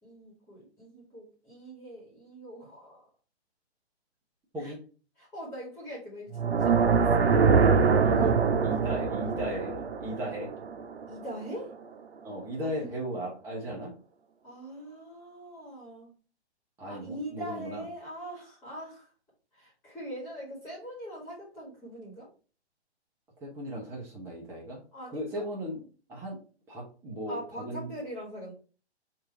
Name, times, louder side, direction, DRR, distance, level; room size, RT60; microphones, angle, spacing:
voice 1, 0.0-3.1 4.6-4.7 5.2-7.1 8.1-8.5 11.1-11.7 12.8-12.9 14.4-16.1 16.8-19.1 19.5-22.3 24.9-25.5 27.3-28.5, equal, 10° left, -5 dB, 1.5 m, -42 dB
sound 1, 6.3-11.4, right 5 dB, 65° right, 0.8 m, -24 dB
voice 2, 8.0-8.4 8.6-10.5 12.2-13.9 16.8-17.8 23.4-24.8 25.1-25.8 26.1-26.4 26.7-27.9, equal, 10° right, -3 dB, 0.7 m, -36 dB
4.6 x 2.6 x 4.5 m, 0.37 s
figure-of-eight pair, 135°, 34 cm